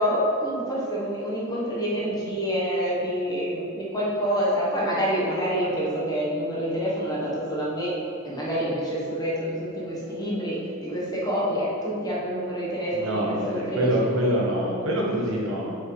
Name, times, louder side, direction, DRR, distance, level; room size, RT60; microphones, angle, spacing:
voice 1, 0.0-7.9 8.2-14.1, equal, 20° left, -6 dB, 1.3 m, -27 dB
voice 2, 12.9-15.8, equal, 70° right, -3 dB, 1.2 m, -25 dB
5.5 x 4.9 x 4.9 m, 2.6 s
head